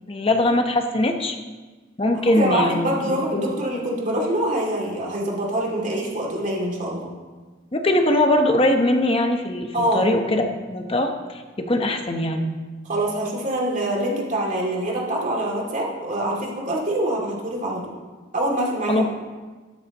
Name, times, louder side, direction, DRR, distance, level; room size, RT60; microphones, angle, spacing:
voice 1, 0.1-1.4 2.0-3.6 7.7-12.5 18.9-19.1, left 1 dB, 30° left, 5 dB, 0.9 m, -21 dB
voice 2, 2.3-7.1 9.7-10.0 12.9-17.9 18.3-19.1, right 1 dB, 40° right, -2 dB, 2.6 m, -25 dB
12.5 x 12.5 x 3.0 m, 1.3 s
head